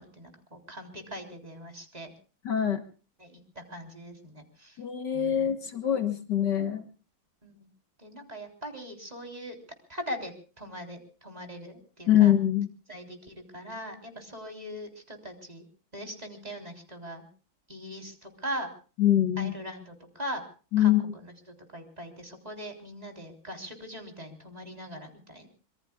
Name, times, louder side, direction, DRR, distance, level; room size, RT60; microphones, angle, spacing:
voice 1, 0.0-2.1 3.2-4.8 5.1-5.4 7.4-7.7 8.0-9.6 9.9-12.3 12.9-15.7 15.9-17.3 17.7-18.7 19.4-20.4 20.8-25.5, equal, 20° right, 3 dB, 3.7 m, -41 dB
voice 2, 2.5-2.8 4.8-6.8 12.1-12.7 19.0-19.5 20.7-21.0, left 11 dB, 60° left, 7 dB, 1.9 m, -24 dB
26.0 x 23.5 x 2.3 m, 0.38 s
omnidirectional pair, 2.2 m